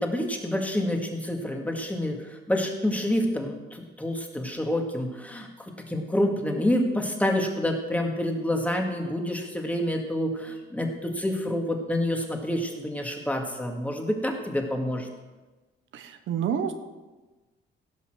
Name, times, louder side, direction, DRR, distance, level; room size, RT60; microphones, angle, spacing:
voice 1, 0.0-15.1, left 1 dB, 5° left, 2 dB, 2.1 m, -28 dB
voice 2, 15.9-16.7, right 8 dB, 75° right, 8 dB, 1.0 m, -28 dB
17.0 x 5.7 x 6.3 m, 1.2 s
cardioid pair, 90°, 20 cm